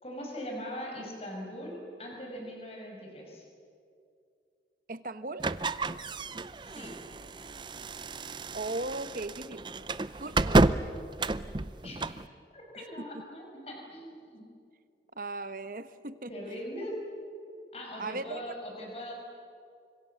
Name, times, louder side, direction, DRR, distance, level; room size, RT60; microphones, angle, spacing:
voice 1, 0.0-3.4 6.7-6.9 11.8-12.2 12.5-14.5 16.3-16.9 17.7-19.1, equal, 35° left, 0 dB, 6.1 m, -41 dB
voice 2, 4.9-5.4 8.5-9.6 10.2-10.7 12.8-12.9 13.1-13.2 15.1-16.6 18.0-18.5, right 2 dB, 50° right, 12 dB, 1.1 m, -37 dB
sound 1, 5.4-12.3, right 2 dB, 25° right, 0.6 m, -30 dB
29.0 x 26.0 x 7.3 m, 2.4 s
head